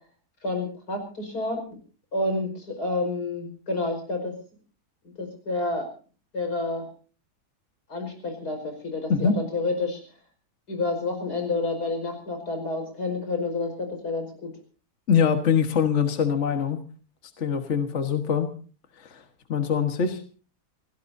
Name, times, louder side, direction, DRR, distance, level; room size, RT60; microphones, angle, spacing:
voice 1, 0.4-1.6 2.1-4.3 5.2-5.9 6.3-6.9 7.9-10.0 10.7-14.5, left 2 dB, 90° left, 5 dB, 5.8 m, -29 dB
voice 2, 9.1-9.4 15.1-16.8 17.4-18.5 19.0-19.2 19.5-20.2, left 6 dB, 50° left, 7 dB, 1.8 m, -23 dB
29.0 x 17.5 x 2.7 m, 0.38 s
omnidirectional pair, 1.7 m